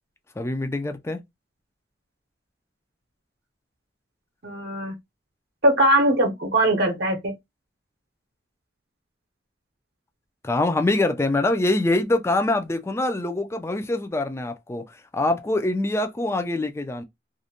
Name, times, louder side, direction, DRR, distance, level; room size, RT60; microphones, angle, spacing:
voice 1, 0.4-1.2 10.4-14.8 15.1-17.0, left 2 dB, 15° left, 0.3 m, -24 dB
voice 2, 4.4-4.9 5.6-7.3, right 1 dB, 60° right, 0.7 m, -21 dB
2.5 x 2.1 x 2.8 m
head